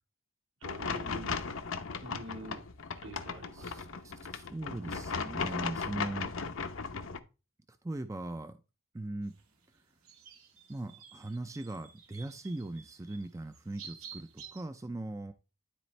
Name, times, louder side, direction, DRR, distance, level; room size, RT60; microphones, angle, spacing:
sound 1, 0.6-7.2, left 5 dB, 70° left, 0.8 m, -37 dB
voice 1, 0.6-1.4 2.0-2.6 3.0-4.1, right 1 dB, 70° right, 3 dB, 1.7 m, -46 dB
voice 2, 3.5-6.3 7.7-8.6 8.9-9.3 10.7-15.3, right 2 dB, 15° right, 9 dB, 0.4 m, -40 dB
sound 2, 9.2-14.6, right 7 dB, 90° right, 1.9 m, -52 dB
12.0 x 4.3 x 3.2 m, 0.30 s
head